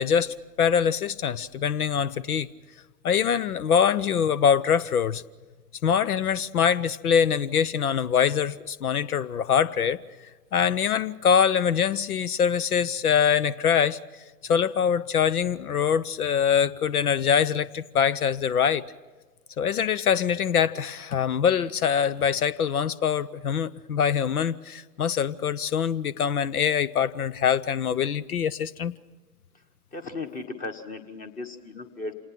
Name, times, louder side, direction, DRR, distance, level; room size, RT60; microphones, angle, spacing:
voice 1, 0.0-2.5 3.0-5.2 5.8-10.0 10.5-14.0 14.4-18.8 19.6-28.9, left 7 dB, 65° left, 21 dB, 0.7 m, -24 dB
voice 2, 29.9-32.1, left 3 dB, 15° left, 8 dB, 1.3 m, -36 dB
27.0 x 19.0 x 5.9 m, 1.3 s
figure-of-eight pair, 105°, 47 cm